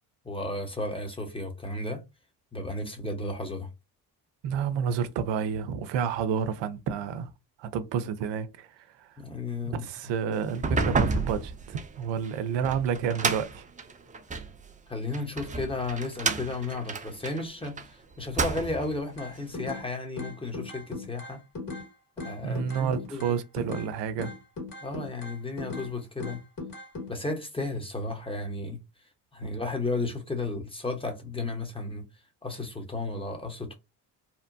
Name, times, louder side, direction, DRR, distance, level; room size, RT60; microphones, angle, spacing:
voice 1, 0.2-2.0 2.5-3.7 9.2-9.9 14.9-21.4 22.2-23.3 24.8-26.4 27.1-28.8 29.3-32.0 32.4-33.7, left 2 dB, 10° left, 1.0 m, -33 dB
voice 2, 4.4-7.3 7.6-8.7 9.0-9.1 9.7-13.7 22.4-24.3, right 7 dB, 65° right, 0.6 m, -30 dB
sound 1, 10.5-14.5 15.1-17.9 18.2-19.0, right 4 dB, 15° right, 0.4 m, -30 dB
sound 2, 19.2-19.9 20.2-21.9 22.2-23.9 24.2-25.9 26.2-27.1, left 3 dB, 45° left, 1.8 m, -38 dB
2.9 x 2.1 x 2.6 m
hypercardioid pair, 55°, 47 cm